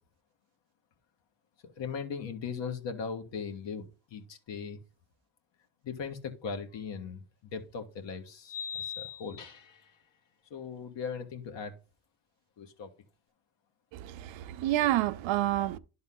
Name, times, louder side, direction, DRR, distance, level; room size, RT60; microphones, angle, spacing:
voice 1, 1.6-4.8 5.8-9.4 10.5-11.7 12.6-12.9, left 6 dB, 65° left, 1.7 m, -39 dB
sound 1, 6.8-6.9 8.4-9.9, left 8 dB, 80° left, 2.6 m, -40 dB
voice 2, 13.9-15.8, right 14 dB, 75° right, 0.7 m, -29 dB
11.0 x 4.0 x 3.8 m
cardioid pair, 85°, 47 cm